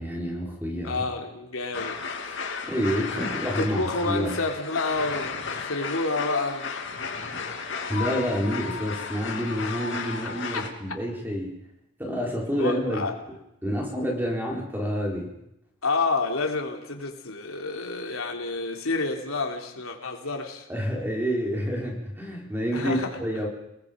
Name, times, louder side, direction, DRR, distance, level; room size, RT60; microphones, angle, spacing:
voice 1, 0.0-1.1 2.2-2.4 2.6-4.4 7.9-11.6 12.0-13.0 13.6-15.4 20.7-23.5, equal, 10° right, -1 dB, 4.4 m, -28 dB
voice 2, 0.8-2.0 3.2-6.7 10.5-10.7 12.3-13.1 15.8-20.7 22.7-23.1, left 3 dB, 85° left, 3 dB, 3.3 m, -29 dB
sound 1, 1.7-10.7, left 5 dB, 60° left, 2.4 m, -34 dB
29.5 x 19.5 x 5.3 m, 0.84 s
head